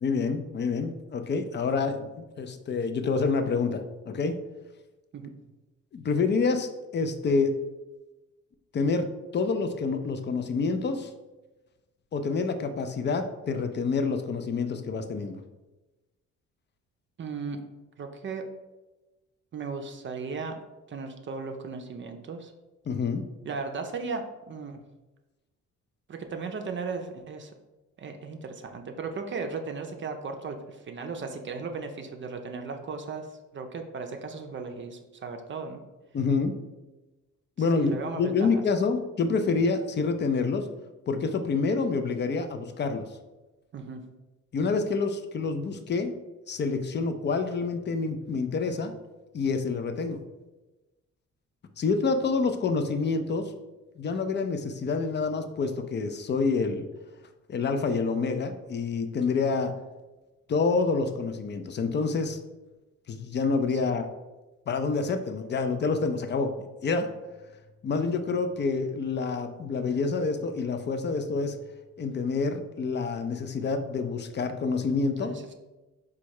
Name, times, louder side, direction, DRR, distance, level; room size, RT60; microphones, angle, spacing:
voice 1, 0.0-4.4 5.9-7.5 8.7-11.1 12.1-15.4 22.9-23.2 36.1-36.5 37.6-40.7 41.1-43.1 44.5-46.2 46.5-48.9 49.3-50.2 51.8-53.5 54.0-56.9 57.5-59.7 60.5-62.4 63.1-64.1 64.7-66.5 66.8-67.1 67.8-71.6 72.0-75.4, left 4 dB, 35° left, 8 dB, 0.5 m, -27 dB
voice 2, 17.2-17.6 18.0-18.5 19.5-20.6 20.9-22.5 23.4-24.8 26.1-27.5 28.0-33.3 33.5-35.8 37.6-38.6 43.7-44.0 75.2-75.5, right 4 dB, 40° right, 5 dB, 0.5 m, -36 dB
4.1 x 2.3 x 4.6 m, 1.1 s
cardioid pair, 90°, 30 cm